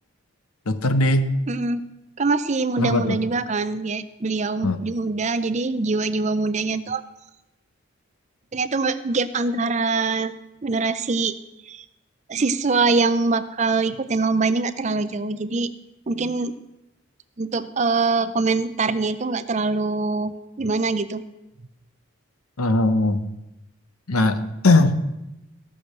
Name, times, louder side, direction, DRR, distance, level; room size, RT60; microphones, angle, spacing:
voice 1, 0.7-1.3 2.8-3.2 4.6-4.8 22.6-23.2 24.1-25.0, left 2 dB, 90° left, 10 dB, 1.0 m, -19 dB
voice 2, 1.5-1.8 2.2-7.0 8.5-10.3 10.6-11.3 11.7-11.8 12.3-15.7 16.1-16.5 17.4-21.2, right 3 dB, 30° right, 13 dB, 0.5 m, -23 dB
15.5 x 6.3 x 6.7 m, 0.93 s
head